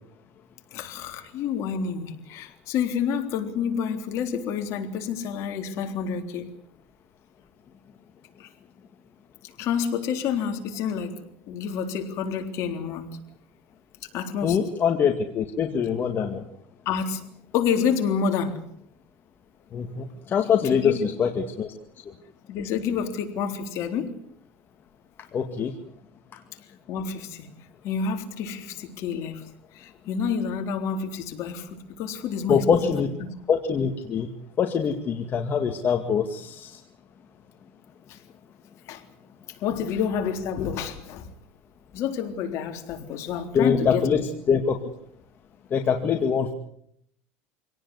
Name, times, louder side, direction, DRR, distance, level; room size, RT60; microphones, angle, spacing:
voice 1, 0.7-6.5 8.4-8.5 9.6-11.2 11.5-13.2 14.1-14.6 16.9-17.2 17.5-18.6 20.5-21.0 22.5-24.1 26.9-27.5 27.8-29.4 29.7-33.0 38.1-38.2 38.9-39.0 39.5-41.3 41.9-44.1, left 7 dB, 55° left, 5 dB, 3.7 m, -28 dB
voice 2, 14.4-16.4 19.7-21.7 25.3-25.7 32.5-33.1 33.5-34.3 34.6-36.7 43.5-44.2 44.5-44.8 45.7-46.5, left 6 dB, 35° left, 4 dB, 2.1 m, -23 dB
26.0 x 18.0 x 8.1 m, 0.70 s
supercardioid pair, 120°, 6 cm